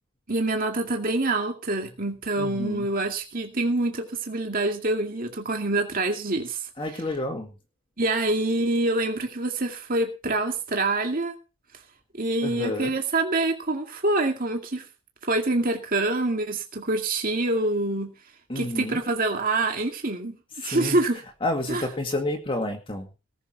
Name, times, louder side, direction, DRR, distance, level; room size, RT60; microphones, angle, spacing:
voice 1, 0.3-6.7 8.0-11.4 12.2-14.9 15.3-18.1 18.6-21.2 21.7-21.8, right 2 dB, 40° right, 3 dB, 2.2 m, -26 dB
voice 2, 2.4-2.9 6.8-7.5 12.4-12.9 18.5-19.0 20.6-21.0 21.4-23.1, left 1 dB, 25° left, 4 dB, 2.1 m, -30 dB
19.0 x 7.1 x 5.9 m, 0.32 s
head